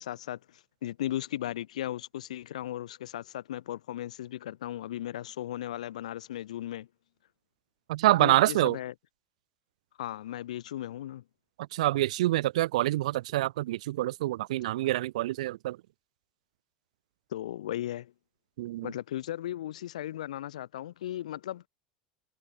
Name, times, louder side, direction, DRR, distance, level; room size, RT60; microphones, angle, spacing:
voice 1, 0.0-6.9 8.2-8.9 10.0-11.2 17.3-18.1 18.8-21.7, left 12 dB, 75° left, 6.7 m, -36 dB
voice 2, 7.9-8.8 11.7-15.8 18.6-18.9, right 16 dB, 70° right, 2.1 m, -26 dB
figure-of-eight pair, 80°, 4 cm